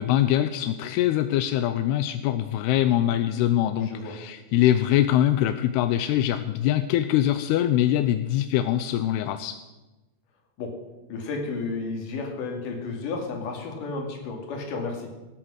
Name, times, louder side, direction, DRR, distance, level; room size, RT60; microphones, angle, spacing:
voice 1, 0.0-9.6, left 12 dB, 80° left, 10 dB, 2.4 m, -23 dB
voice 2, 3.8-4.1 10.6-10.7 11.1-15.1, left 3 dB, 55° left, 2 dB, 3.6 m, -32 dB
18.0 x 9.1 x 6.4 m, 1.1 s
omnidirectional pair, 5.1 m